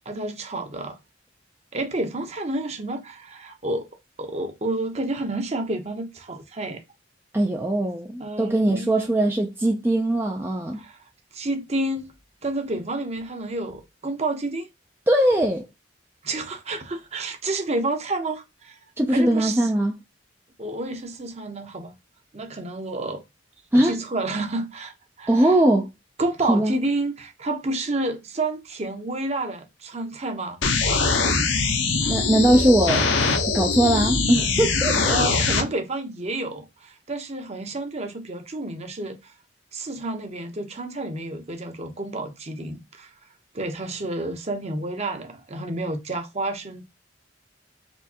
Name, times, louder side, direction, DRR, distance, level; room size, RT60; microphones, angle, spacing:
voice 1, 0.1-1.0 1.7-3.9 4.2-6.8 8.2-8.9 10.8-11.0 11.3-12.1 12.4-14.7 16.2-18.8 19.1-19.7 20.6-21.9 22.3-23.2 23.8-24.9 25.2-25.5 26.2-30.6 30.9-31.2 32.0-32.1 35.1-39.3 39.7-43.1 43.5-46.9, right 2 dB, 35° right, 0.8 m, -30 dB
voice 2, 7.3-10.8 15.1-15.7 19.0-20.0 23.7-24.0 25.3-25.9 26.5-26.8 32.1-33.1 33.5-35.2, right 1 dB, 10° right, 0.4 m, -20 dB
sound 1, 30.6-35.6, left 4 dB, 70° left, 0.9 m, -22 dB
4.4 x 3.1 x 2.8 m
head